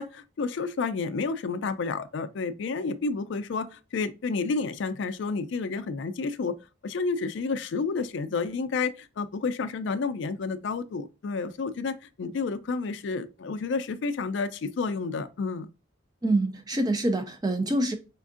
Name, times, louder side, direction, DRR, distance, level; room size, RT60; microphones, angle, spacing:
voice 1, 0.0-6.5 6.8-15.7, left 4 dB, 65° left, 0.4 m, -30 dB
voice 2, 16.2-18.0, right 1 dB, 20° right, 0.5 m, -26 dB
4.4 x 2.5 x 2.4 m
head